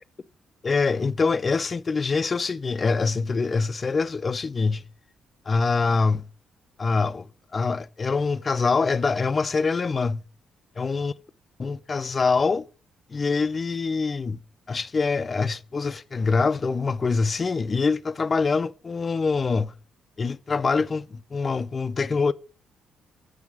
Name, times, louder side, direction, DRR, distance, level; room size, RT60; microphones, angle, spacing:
voice 1, 0.6-4.8 5.5-6.3 6.8-7.2 7.5-10.2 10.8-11.1 11.6-12.7 13.1-14.4 14.7-19.7 20.2-22.3, left 4 dB, 35° left, 0.4 m, -24 dB
7.1 x 6.6 x 6.0 m
cardioid pair, 90°, 0 cm